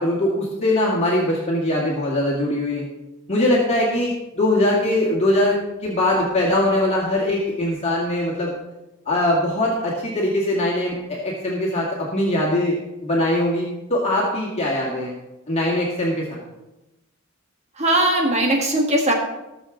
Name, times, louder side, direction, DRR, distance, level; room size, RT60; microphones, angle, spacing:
voice 1, 0.0-2.8 3.3-8.6 9.1-12.8 13.0-15.1 15.5-16.4, left 1 dB, 30° left, -4 dB, 2.1 m, -21 dB
voice 2, 17.8-19.1, right 1 dB, 35° right, 0 dB, 1.7 m, -19 dB
19.5 x 6.6 x 3.8 m, 0.98 s
head